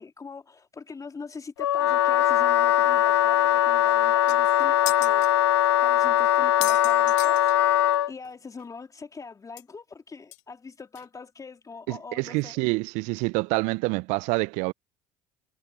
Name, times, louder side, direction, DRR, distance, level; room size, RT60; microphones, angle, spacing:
voice 1, 0.0-5.3 5.8-7.4 8.1-12.6, left 4 dB, 25° left, 2.7 m, -42 dB
Wind instrument woodwind instrument, 1.6-8.1, left 11 dB, 90° left, 0.5 m, -21 dB
sound 1, 3.9-4.0 4.3-5.3 5.9-6.0 6.3-7.9 8.2-8.3 8.6-8.7 9.6-9.7 10.3-10.4 11.0-11.1, left 19 dB, 60° left, 1.1 m, -35 dB
voice 2, 11.9-14.7, right 27 dB, 65° right, 0.4 m, -27 dB
hypercardioid pair, 65°, 14 cm